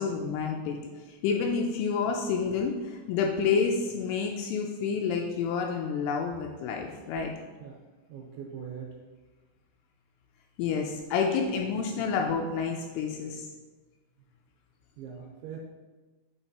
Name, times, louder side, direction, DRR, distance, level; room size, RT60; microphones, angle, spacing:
voice 1, 0.0-7.3 10.6-13.5, left 5 dB, 85° left, 1 dB, 2.9 m, -29 dB
voice 2, 8.1-9.0 15.0-15.6, right 7 dB, 80° right, -2 dB, 2.9 m, -41 dB
8.1 x 3.1 x 4.1 m, 1.3 s
omnidirectional pair, 5.9 m